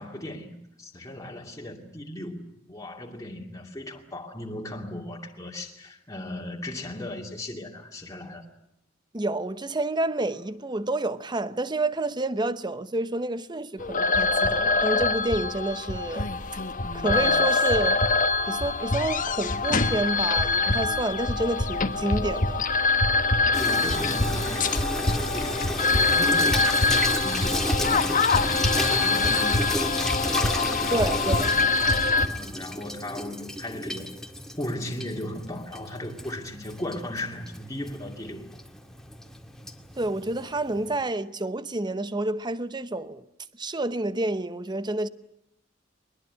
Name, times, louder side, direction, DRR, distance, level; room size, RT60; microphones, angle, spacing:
voice 1, 0.0-8.5 23.6-30.1 30.7-31.6 32.3-34.1 34.6-38.5, left 1 dB, 20° left, 2.5 m, -37 dB
voice 2, 9.1-16.3 16.9-18.0 18.5-22.6 30.9-31.5 40.0-43.2 43.6-45.1, right 2 dB, 25° right, 0.9 m, -29 dB
sound 1, 13.8-32.3, left 3 dB, 45° left, 1.4 m, -24 dB
Water tap faucet / Sink (filling or washing), 23.5-41.0, left 1 dB, 5° left, 1.9 m, -32 dB
22.0 x 21.5 x 9.7 m
head